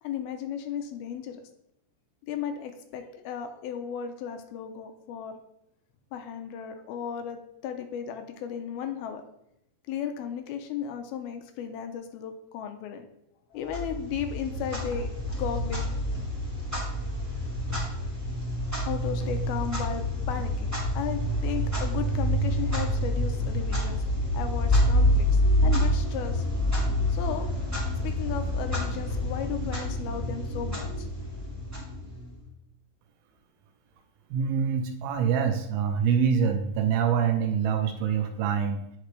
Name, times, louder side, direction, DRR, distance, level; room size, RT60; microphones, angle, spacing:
voice 1, 0.0-1.4 2.3-5.4 6.1-9.2 9.9-13.1 13.5-16.0 18.6-31.1, left 8 dB, 80° left, 7 dB, 2.5 m, -35 dB
Clock, 13.7-32.4, equal, 5° right, 2.2 m, -27 dB
voice 2, 34.3-38.9, right 7 dB, 80° right, 5 dB, 2.4 m, -25 dB
9.9 x 5.2 x 3.2 m, 0.80 s
omnidirectional pair, 4.5 m